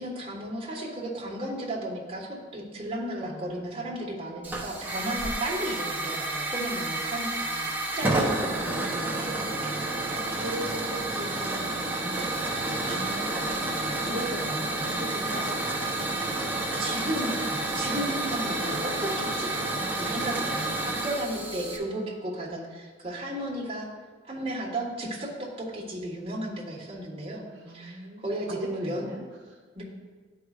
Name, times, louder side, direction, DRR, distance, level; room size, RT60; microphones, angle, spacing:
voice 1, 0.0-7.7 7.9-9.8 12.8-13.1 14.1-14.2 16.8-17.4 17.7-19.5 20.0-23.9 24.3-28.0 28.2-29.1 29.7-29.8, right 1 dB, 35° right, -5 dB, 1.4 m, -34 dB
voice 2, 3.2-4.1 8.6-8.9 10.3-16.6 17.4-17.9 20.5-21.8 27.5-29.6, right 1 dB, 75° right, -3 dB, 1.2 m, -40 dB
Hiss / Fire, 4.4-21.8, right 2 dB, 10° right, 0.8 m, -30 dB
Wind instrument woodwind instrument, 18.4-22.5, left 1 dB, 70° left, 1.3 m, -43 dB
11.5 x 4.8 x 2.4 m, 1.4 s
head